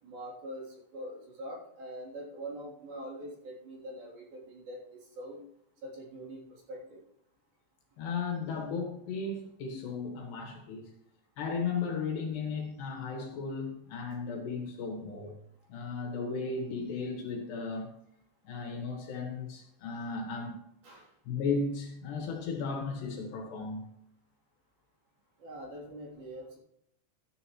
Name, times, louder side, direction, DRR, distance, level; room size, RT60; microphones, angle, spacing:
voice 1, 0.0-5.4 5.8-7.0 20.8-21.1 25.4-26.6, right 1 dB, 50° right, 4.7 m, -44 dB
voice 2, 8.0-10.9 11.4-15.4 15.7-17.9 18.4-20.6 21.3-23.9, left 4 dB, 65° left, 3.4 m, -35 dB
13.0 x 11.0 x 3.1 m
omnidirectional pair, 5.7 m